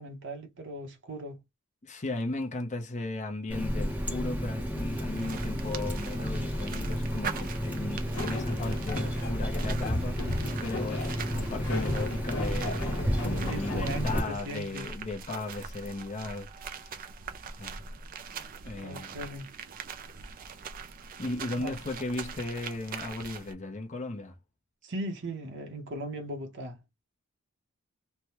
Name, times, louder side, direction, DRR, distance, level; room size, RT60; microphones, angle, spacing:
voice 1, 0.0-1.4 13.0-14.9 18.8-19.5 21.6-21.8 24.8-26.8, right 1 dB, 55° right, 0.9 m, -38 dB
voice 2, 1.8-17.0 17.5-17.8 18.6-19.2 21.2-24.3, left 2 dB, 35° left, 0.7 m, -36 dB
Water tap faucet, 3.5-14.2, equal, 5° right, 0.7 m, -32 dB
sound 1, 4.8-23.5, right 5 dB, 40° right, 0.4 m, -42 dB
sound 2, 8.1-14.7, left 2 dB, 70° left, 1.1 m, -38 dB
3.3 x 2.2 x 2.9 m
head